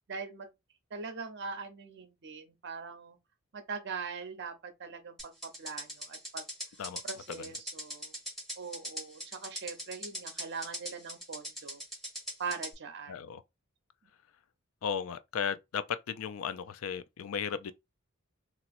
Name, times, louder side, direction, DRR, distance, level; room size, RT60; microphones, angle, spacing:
voice 1, 0.1-0.5 0.9-3.2 3.5-6.4 7.0-8.2 8.6-11.8 12.4-13.3, right 5 dB, 55° right, 0.7 m, -41 dB
sound 1, 5.2-12.7, equal, ahead, 1.1 m, -41 dB
voice 2, 13.1-13.4 14.8-17.7, left 7 dB, 70° left, 0.4 m, -35 dB
3.0 x 2.9 x 2.5 m
head